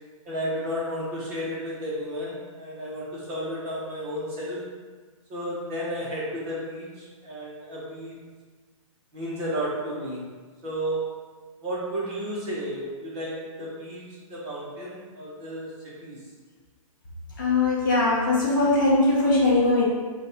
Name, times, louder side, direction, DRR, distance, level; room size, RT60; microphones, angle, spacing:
voice 1, 0.2-4.6 5.3-8.1 9.1-10.2 10.6-11.3 11.6-14.0 14.3-16.2, equal, 15° right, -7 dB, 0.8 m, -32 dB
voice 2, 17.4-19.8, left 2 dB, 35° left, -5 dB, 0.7 m, -21 dB
4.0 x 2.3 x 4.1 m, 1.4 s
hypercardioid pair, 180°, 18 cm